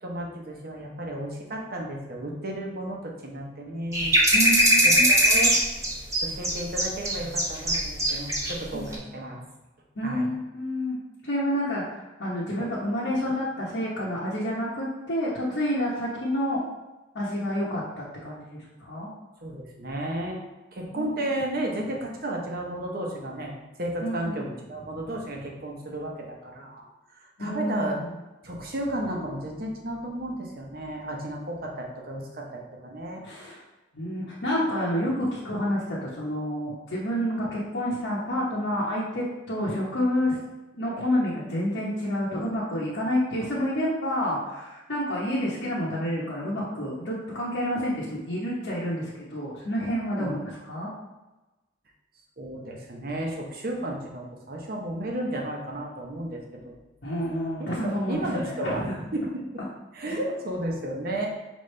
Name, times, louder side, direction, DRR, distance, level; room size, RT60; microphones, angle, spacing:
voice 1, 0.0-4.1 4.8-5.5 6.2-9.4 10.0-10.3 19.4-20.4 20.7-23.5 23.8-26.9 27.1-28.0 28.4-33.2 50.2-50.3 52.4-56.7 57.6-57.7 58.1-58.8 59.1-59.4 59.9-61.3, right 1 dB, 50° right, 0 dB, 0.8 m, -33 dB
sound 1, 3.9-8.5 8.8-8.9, right 1 dB, 15° right, 0.8 m, -20 dB
voice 2, 4.3-5.1 8.7-9.1 10.0-16.6 17.1-19.1 20.9-21.3 24.0-24.5 27.4-28.1 33.2-33.6 33.9-40.4 40.7-50.9 57.0-59.0, equal, 70° left, -8 dB, 1.0 m, -29 dB
5.3 x 3.1 x 3.2 m, 1.1 s
head